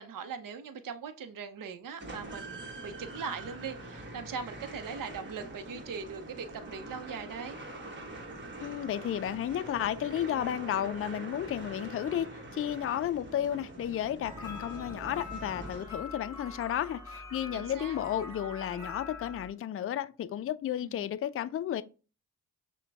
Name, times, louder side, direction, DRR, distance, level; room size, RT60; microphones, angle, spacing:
voice 1, 0.0-7.6 17.5-18.0 20.8-21.1, right 6 dB, 55° right, 0.8 m, -40 dB
sound 1, 2.0-16.3, right 2 dB, 30° right, 1.3 m, -44 dB
voice 2, 8.6-21.8, left 10 dB, 35° left, 0.4 m, -33 dB
sound 2, 14.2-19.5, left 3 dB, 5° right, 2.0 m, -44 dB
6.4 x 2.3 x 3.5 m
supercardioid pair, 55°, 39 cm